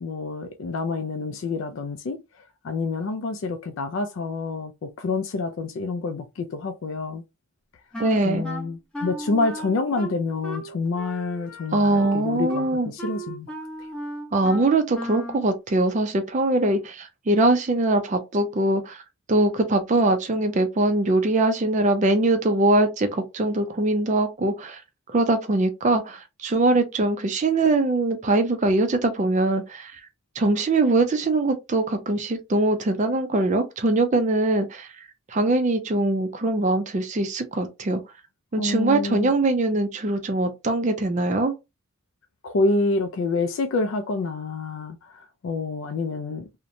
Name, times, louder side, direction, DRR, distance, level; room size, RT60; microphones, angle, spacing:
voice 1, 0.0-7.2 8.2-13.5 13.8-13.9 38.6-39.3 42.4-46.5, left 3 dB, 65° left, 0.4 m, -28 dB
Wind instrument woodwind instrument, 7.9-15.5, right 1 dB, 5° left, 0.7 m, -36 dB
voice 2, 8.0-8.5 11.7-12.9 14.3-19.0 19.3-24.8 25.1-30.0 30.4-34.9 35.3-38.0 38.5-41.5, right 2 dB, 35° right, 0.4 m, -22 dB
2.8 x 2.1 x 2.5 m
head